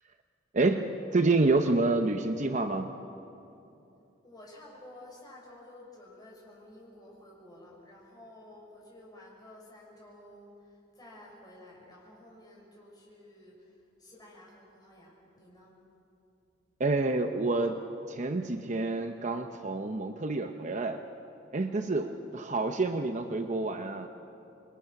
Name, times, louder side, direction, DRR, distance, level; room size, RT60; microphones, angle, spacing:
voice 1, 0.5-3.0 16.8-17.8 18.1-21.0 21.5-24.1, right 3 dB, 40° right, 6 dB, 0.8 m, -28 dB
voice 2, 4.2-15.7 22.0-22.3, left 1 dB, 20° left, -3 dB, 6.6 m, -52 dB
27.5 x 22.5 x 6.0 m, 2.8 s
head